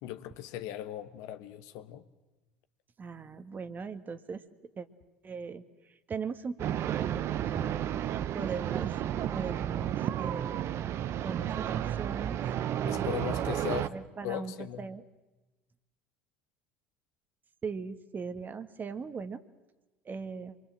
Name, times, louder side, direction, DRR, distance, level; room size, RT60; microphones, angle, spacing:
voice 1, 0.0-2.0 12.8-13.9 14.2-14.8, left 12 dB, 65° left, 1.3 m, -38 dB
voice 2, 3.0-4.4 4.7-4.9 5.2-9.0 9.3-10.9 11.2-12.4 12.8-13.4 13.7-15.0 17.6-19.4 20.0-20.6, right 5 dB, 30° right, 1.7 m, -40 dB
sound 1, 6.6-13.9, right 11 dB, 50° right, 1.0 m, -32 dB
26.5 x 23.0 x 7.7 m
hypercardioid pair, 65°, 6 cm